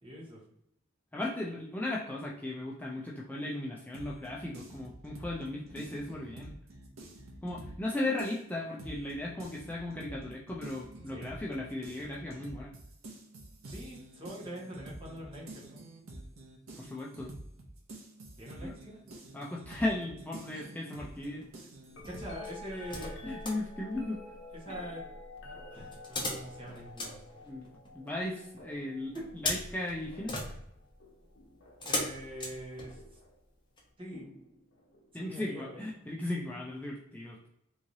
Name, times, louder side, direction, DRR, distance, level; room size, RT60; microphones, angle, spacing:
voice 1, 0.0-0.4 11.1-11.4 13.6-15.8 18.4-19.0 20.5-20.7 22.0-23.2 24.5-25.0 25.4-27.2 31.8-33.0 34.0-34.3 35.1-35.8, equal, 25° right, -5 dB, 1.4 m, -44 dB
voice 2, 1.1-6.5 7.4-12.7 16.8-17.4 18.6-18.7 19.3-21.4 23.2-24.2 27.5-27.7 27.9-30.3 35.1-37.5, left 1 dB, 10° left, -4 dB, 0.4 m, -36 dB
sound 1, 3.9-7.9 8.2-22.4, right 1 dB, 80° right, 0.7 m, -48 dB
sound 2, 21.1-21.6 22.4-23.6 25.9-28.1 29.2-33.3 33.8-33.9, left 2 dB, 25° left, 0.9 m, -39 dB
sound 3, 21.9-32.0 32.9-33.4 34.1-35.1 36.9-37.0, left 2 dB, 65° left, 0.9 m, -50 dB
3.6 x 3.1 x 2.7 m, 0.77 s
head